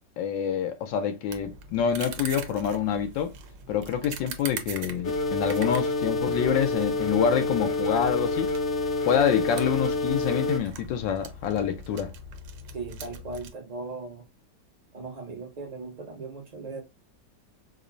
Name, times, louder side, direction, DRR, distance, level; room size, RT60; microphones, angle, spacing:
voice 1, 0.2-3.3 3.7-8.5 9.0-12.1, left 8 dB, 85° left, 1.3 m, -26 dB
sound 1, 1.3-13.5, right 2 dB, 85° right, 1.4 m, -42 dB
sound 2, 5.0-10.6, left 2 dB, 60° left, 0.8 m, -28 dB
voice 2, 12.7-14.3 14.9-16.8, right 3 dB, 35° right, 0.7 m, -38 dB
4.9 x 2.1 x 2.5 m
omnidirectional pair, 2.0 m